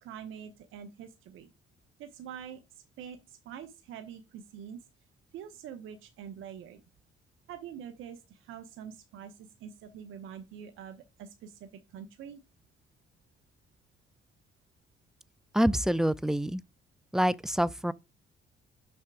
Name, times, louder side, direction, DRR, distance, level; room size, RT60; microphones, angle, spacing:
voice 1, 0.0-1.5 2.0-2.6 3.0-4.8 5.3-6.8 7.5-12.4, right 8 dB, 85° right, 0.9 m, -45 dB
voice 2, 15.5-16.6 17.1-17.9, equal, 5° right, 0.3 m, -26 dB
6.5 x 3.3 x 6.0 m
cardioid pair, 90°, 20 cm